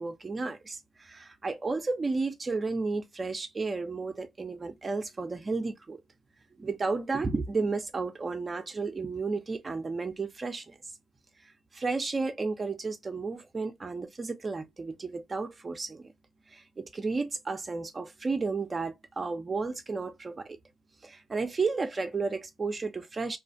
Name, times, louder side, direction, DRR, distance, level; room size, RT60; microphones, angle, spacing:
voice 1, 0.0-6.0 6.6-10.8 11.4-16.1 16.5-20.6 21.0-23.4, right 4 dB, 30° right, 0.4 m, -33 dB
2.3 x 2.1 x 2.5 m
cardioid pair, 90°, 0 cm